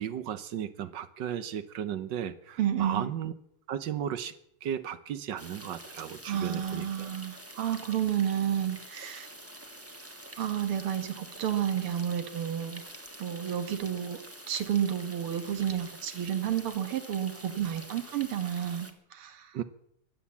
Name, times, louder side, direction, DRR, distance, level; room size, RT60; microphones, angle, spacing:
voice 1, 0.0-3.3 3.7-4.3 4.6-7.1 19.5-19.6, right 9 dB, 65° right, 14 dB, 1.4 m, -35 dB
voice 2, 2.6-3.1 6.3-9.3 10.4-12.8 13.2-14.2 14.5-19.5, right 10 dB, 80° right, 10 dB, 2.3 m, -31 dB
sound 1, 5.4-18.9, right 1 dB, 10° right, 0.9 m, -47 dB
15.5 x 11.5 x 7.2 m, 0.73 s
omnidirectional pair, 2.4 m